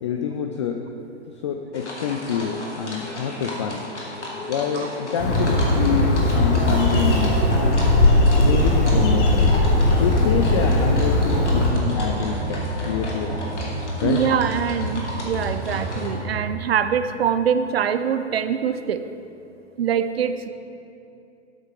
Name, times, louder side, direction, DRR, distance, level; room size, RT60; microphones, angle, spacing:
voice 1, 0.0-0.8 1.4-3.9 4.5-7.8 8.5-9.5 9.8-13.4 14.0-14.2, left 7 dB, 25° left, 4 dB, 0.3 m, -27 dB
sound 1, 1.7-16.2, left 1 dB, 75° left, 2.2 m, -35 dB
Bird, 5.2-11.7, left 1 dB, 45° left, 1.8 m, -19 dB
sound 2, 6.4-16.4, equal, 40° right, 1.8 m, -30 dB
voice 2, 14.0-19.0 19.8-20.5, right 8 dB, 60° right, 11 dB, 0.6 m, -23 dB
12.5 x 8.2 x 3.8 m, 2.7 s
figure-of-eight pair, 110°, 35 cm